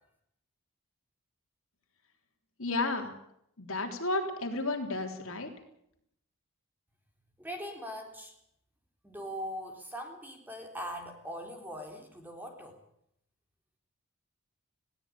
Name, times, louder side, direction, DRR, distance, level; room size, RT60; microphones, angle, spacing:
voice 1, 2.6-3.1 3.6-5.5, left 2 dB, 65° left, 4 dB, 3.7 m, -32 dB
voice 2, 7.4-8.3 9.0-12.8, equal, 10° right, 3 dB, 3.7 m, -41 dB
20.5 x 17.0 x 8.7 m, 0.74 s
head